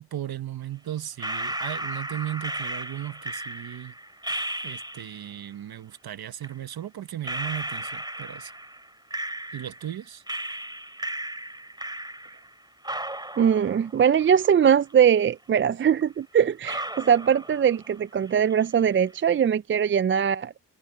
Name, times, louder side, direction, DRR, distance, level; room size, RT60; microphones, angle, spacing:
voice 1, 0.1-3.9 4.6-8.5 9.5-10.2, right 12 dB, 75° right, 1.2 m, -36 dB
sound 1, 1.2-5.3 6.4-6.5 7.2-9.9 10.3-12.5 12.8-14.9 15.2-15.3 16.0-16.1 16.6-18.0 18.2-18.8, right 1 dB, 10° right, 2.7 m, -35 dB
voice 2, 13.4-20.5, right 8 dB, 35° right, 0.4 m, -21 dB
cardioid pair, 65°, 37 cm